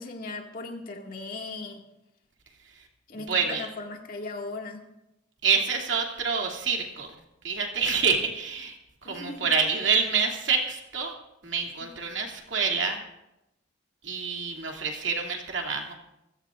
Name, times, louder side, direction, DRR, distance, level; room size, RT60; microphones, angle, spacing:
voice 1, 0.0-1.8 3.1-4.8 9.0-9.5 11.8-11.9, left 3 dB, 45° left, 1 dB, 2.1 m, -38 dB
voice 2, 3.3-3.7 5.4-7.1 7.4-8.7 9.0-11.1 11.4-13.0 14.0-16.0, right 5 dB, 60° right, 1 dB, 2.7 m, -27 dB
25.5 x 16.0 x 2.6 m, 0.90 s
head